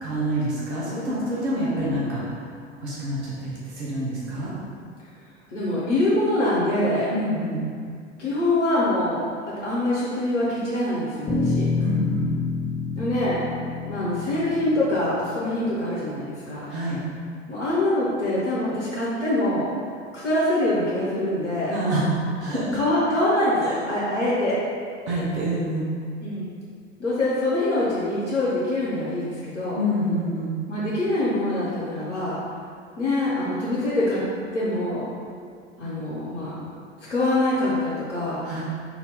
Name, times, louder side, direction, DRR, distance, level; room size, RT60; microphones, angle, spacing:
voice 1, 0.0-2.3 2.8-4.5 7.1-7.6 11.8-12.3 16.7-17.0 21.7-22.1 22.4-22.8 23.6-23.8 25.1-25.9 29.7-30.5 38.4-38.6, equal, 70° right, -7 dB, 1.0 m, -27 dB
voice 2, 5.5-7.1 8.2-11.7 13.0-13.4 13.8-16.7 17.5-19.7 20.1-21.7 22.7-24.5 26.2-26.5 27.0-29.8 30.7-32.4 33.0-34.2 34.5-35.0 35.8-36.5 37.1-38.4, left 1 dB, 90° left, -9 dB, 0.8 m, -24 dB
sound 1, 11.3-15.6, left 4 dB, 25° left, 0.9 m, -27 dB
4.6 x 2.7 x 3.4 m, 2.2 s
figure-of-eight pair, 75°, 35 cm